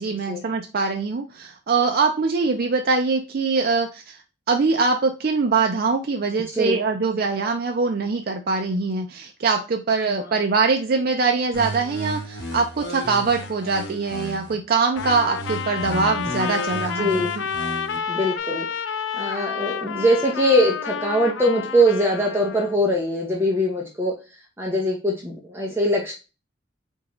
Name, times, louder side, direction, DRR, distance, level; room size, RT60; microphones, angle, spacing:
voice 1, 0.0-4.2 4.5-17.4, right 4 dB, 50° right, 4 dB, 0.4 m, -23 dB
sound 1, 11.5-14.5 15.0-18.0, equal, 55° left, 1.1 m, -34 dB
Trumpet, 14.9-22.8, left 7 dB, 75° left, 0.4 m, -30 dB
voice 2, 17.0-17.3 18.1-18.7 19.2-24.1 24.6-26.1, equal, 10° right, -1 dB, 0.7 m, -22 dB
3.9 x 3.6 x 3.0 m, 0.30 s
head